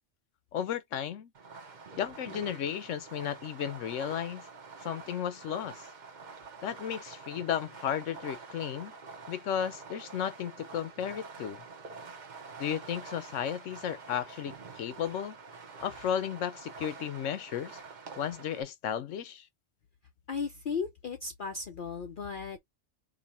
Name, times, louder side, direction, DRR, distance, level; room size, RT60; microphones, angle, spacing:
voice 1, 0.5-1.3 2.0-4.5 4.8-5.8 6.6-8.9 9.3-11.6 12.6-15.4 15.8-17.8 18.2-19.4, left 9 dB, 80° left, 1.0 m, -34 dB
Fireworks, 1.3-18.6, right 4 dB, 40° right, 0.9 m, -47 dB
voice 2, 20.3-22.6, left 5 dB, 50° left, 0.7 m, -35 dB
2.8 x 2.8 x 4.1 m
omnidirectional pair, 1.3 m